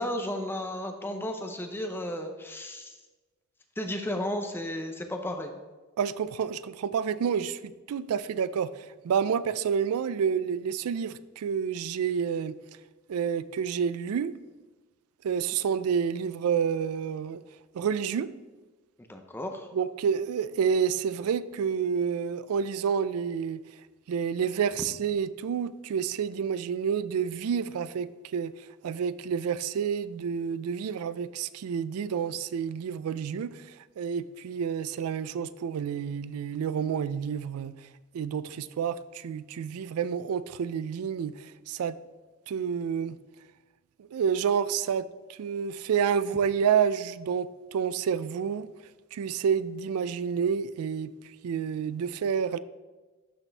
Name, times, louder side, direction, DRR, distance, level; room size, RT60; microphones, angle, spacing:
voice 1, 0.0-3.0 3.8-5.5 19.1-19.7, left 1 dB, 10° left, 0.5 m, -33 dB
voice 2, 6.0-12.5 13.1-14.4 15.2-17.4 17.7-18.3 19.7-23.6 24.1-28.5 28.8-37.7 38.1-42.0 42.5-43.2 44.0-48.7 49.1-51.1 51.4-52.6, right 7 dB, 80° right, 0.3 m, -29 dB
12.0 x 4.2 x 3.3 m
head